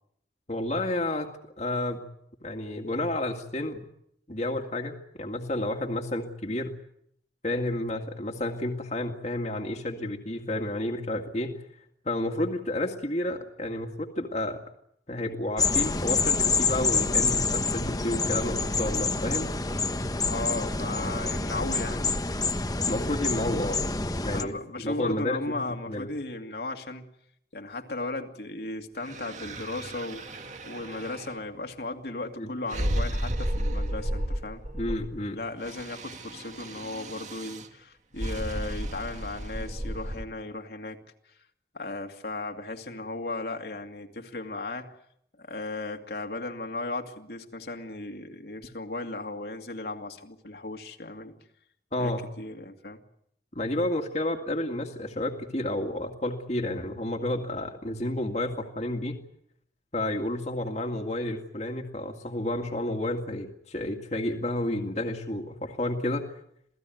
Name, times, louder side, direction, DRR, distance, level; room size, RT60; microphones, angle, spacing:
voice 1, 0.5-1.3 1.6-2.0 2.4-3.8 4.3-6.8 7.4-11.5 12.1-14.6 15.1-19.5 22.9-23.8 24.2-24.6 24.8-26.1 32.4-32.5 34.7-35.4 51.9-52.3 53.6-59.2 59.9-66.3, left 1 dB, 40° left, 3 dB, 2.2 m, -31 dB
sound 1, 15.6-24.4, left 4 dB, 20° left, 1.2 m, -27 dB
voice 2, 20.3-22.0 24.3-27.1 27.5-34.6 35.3-41.0 41.7-44.9 45.4-51.4 52.0-53.0, left 2 dB, 65° left, 4 dB, 2.4 m, -36 dB
sound 2, 29.0-31.4 32.7-35.3 35.5-37.7 38.2-40.2, right 1 dB, 45° right, 2.1 m, -33 dB
28.0 x 18.0 x 9.3 m, 0.73 s
head